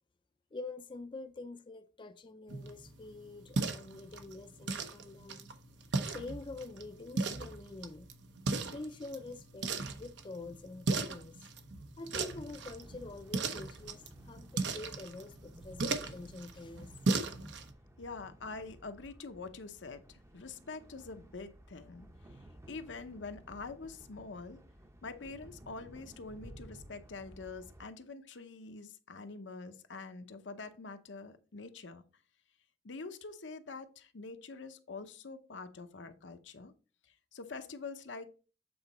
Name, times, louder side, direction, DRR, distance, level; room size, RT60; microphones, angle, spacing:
voice 1, 0.5-5.4 6.1-8.1 8.7-11.4 12.0-16.9, left 3 dB, 25° left, 0.4 m, -46 dB
sound 1, 2.5-17.7, right 3 dB, 70° right, 0.8 m, -38 dB
sound 2, 12.3-27.9, right 1 dB, 15° right, 0.6 m, -55 dB
voice 2, 18.0-22.1 22.7-24.6 25.0-32.0 32.8-36.7 37.3-38.4, left 4 dB, 85° left, 0.8 m, -45 dB
7.9 x 3.9 x 4.1 m
head